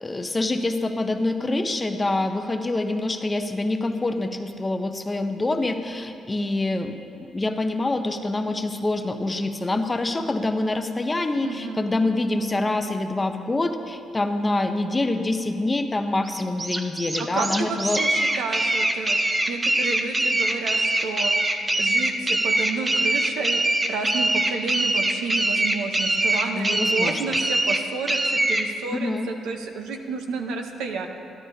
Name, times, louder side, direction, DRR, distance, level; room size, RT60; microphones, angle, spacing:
voice 1, 0.0-6.9 7.3-18.0 26.5-27.4 28.9-29.3, left 2 dB, 20° left, 7 dB, 0.6 m, -26 dB
voice 2, 11.4-11.9 17.2-21.3 21.8-23.6 23.9-28.2 28.5-31.1, right 4 dB, 90° right, 4 dB, 0.8 m, -31 dB
sound 1, 16.3-28.7, right 1 dB, 20° right, 0.6 m, -23 dB
12.0 x 11.5 x 2.7 m, 2.6 s
cardioid pair, 90°, 0 cm